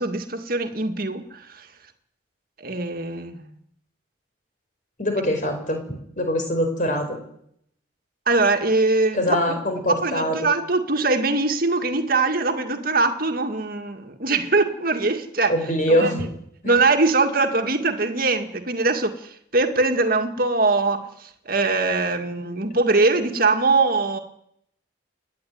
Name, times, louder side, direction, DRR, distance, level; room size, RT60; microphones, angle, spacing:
voice 1, 0.0-1.7 2.6-3.5 8.3-15.5 15.9-16.3 16.6-24.2, right 3 dB, 45° right, 7 dB, 2.1 m, -22 dB
voice 2, 5.0-5.8 6.2-7.2 9.1-10.5 15.5-16.2 16.6-16.7, equal, 40° left, 5 dB, 5.4 m, -23 dB
29.5 x 11.0 x 9.6 m, 0.72 s
head